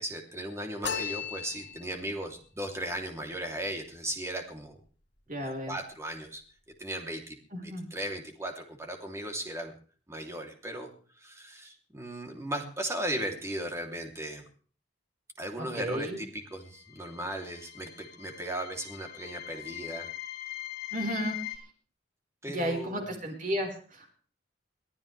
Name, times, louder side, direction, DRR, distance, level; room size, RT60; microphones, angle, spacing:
voice 1, 0.0-4.8 5.4-6.4 6.8-7.4 7.9-9.7 10.1-10.9 11.2-14.4 15.4-20.1 22.4-23.1, right 1 dB, 15° right, 3 dB, 3.2 m, -37 dB
sound 1, 0.8-2.1, left 7 dB, 85° left, 3.0 m, -35 dB
voice 2, 5.3-5.8 7.5-7.9 15.6-16.2 20.9-21.3 22.5-24.1, equal, 50° right, 2 dB, 5.1 m, -33 dB
sound 2, 16.7-21.6, left 15 dB, 60° left, 3.9 m, -41 dB
23.0 x 14.0 x 3.4 m, 0.41 s
head